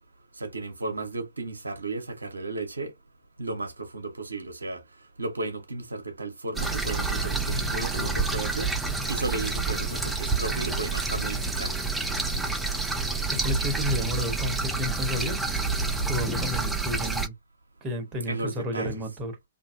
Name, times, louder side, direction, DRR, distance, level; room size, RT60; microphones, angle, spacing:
voice 1, 0.4-2.9 3.4-4.8 5.2-8.7 9.1-11.7 18.3-19.0, right 2 dB, 75° right, 0.7 m, -34 dB
sound 1, 6.5-17.3, right 3 dB, 5° right, 0.5 m, -28 dB
voice 2, 13.3-15.4 16.0-17.3 17.8-19.3, left 2 dB, 20° right, 0.9 m, -31 dB
2.7 x 2.5 x 2.5 m
figure-of-eight pair, 120°, 0 cm